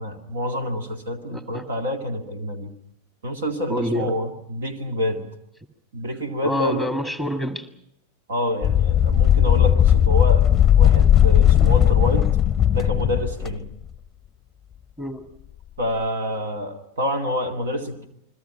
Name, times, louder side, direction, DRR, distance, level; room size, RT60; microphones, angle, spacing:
voice 1, 0.0-2.7 3.2-5.3 5.9-6.9 8.3-12.3 12.7-13.7 15.8-18.1, left 1 dB, 65° right, 6 dB, 2.3 m, -27 dB
voice 2, 1.3-1.7 3.7-4.2 6.4-7.7 11.6-11.7 15.0-15.3, equal, 10° right, 7 dB, 1.9 m, -27 dB
sound 1, 8.6-13.6, left 10 dB, 20° left, 0.8 m, -17 dB
29.5 x 21.5 x 5.7 m, 0.77 s
figure-of-eight pair, 90°, 0 cm